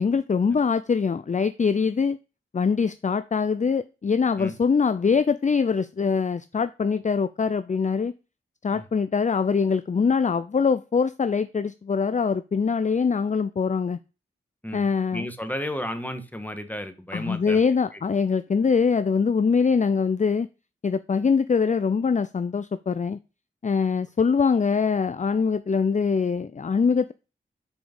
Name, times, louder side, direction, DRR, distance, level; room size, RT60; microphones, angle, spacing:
voice 1, 0.0-2.2 2.5-8.1 8.6-14.0 14.7-15.3 17.1-20.5 20.8-23.2 23.6-27.1, left 5 dB, 35° left, 0.4 m, -23 dB
voice 2, 14.6-17.6 17.9-18.0, equal, 10° left, 1.4 m, -33 dB
6.3 x 4.9 x 5.1 m
cardioid pair, 50°, 21 cm